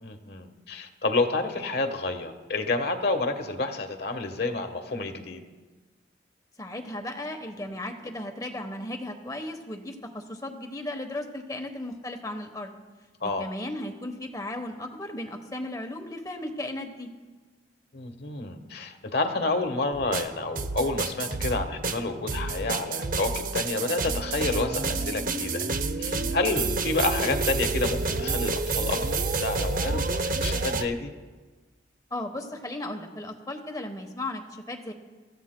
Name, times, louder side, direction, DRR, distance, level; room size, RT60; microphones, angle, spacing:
voice 1, 0.0-5.4 13.2-13.5 17.9-25.7 26.0-31.1, left 3 dB, 60° left, 7 dB, 1.2 m, -29 dB
voice 2, 6.6-12.7 13.2-17.1 32.1-34.9, left 1 dB, 20° left, 5 dB, 1.0 m, -36 dB
sound 1, 19.9-30.9, right 3 dB, 50° right, 0.7 m, -29 dB
26.0 x 14.5 x 2.2 m, 1.3 s
head